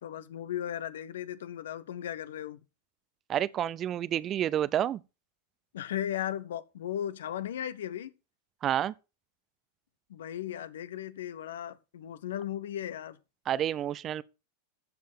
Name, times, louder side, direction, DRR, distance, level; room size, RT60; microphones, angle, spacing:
voice 1, 0.0-2.6 5.7-8.1 10.1-13.2, left 10 dB, 60° left, 0.9 m, -36 dB
voice 2, 3.3-5.0 8.6-8.9 13.5-14.2, right 10 dB, 30° right, 0.6 m, -29 dB
14.0 x 7.5 x 4.4 m
figure-of-eight pair, 90°, 0 cm